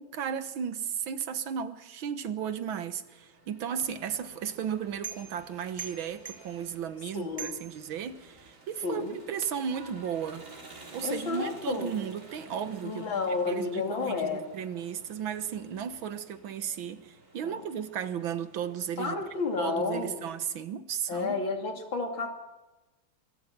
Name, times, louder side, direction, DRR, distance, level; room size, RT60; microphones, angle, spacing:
voice 1, 0.0-10.5 10.9-19.2 19.6-21.4, right 8 dB, 75° right, 2.0 m, -35 dB
sound 1, 2.2-20.6, right 2 dB, 40° right, 3.8 m, -53 dB
sound 2, 3.8-8.5, right 7 dB, 15° right, 2.4 m, -45 dB
voice 2, 7.1-7.6 8.8-9.2 11.0-12.0 12.8-14.5 17.4-17.6 19.0-20.3 21.1-22.3, left 4 dB, 70° left, 3.4 m, -31 dB
25.5 x 22.5 x 6.0 m
omnidirectional pair, 2.2 m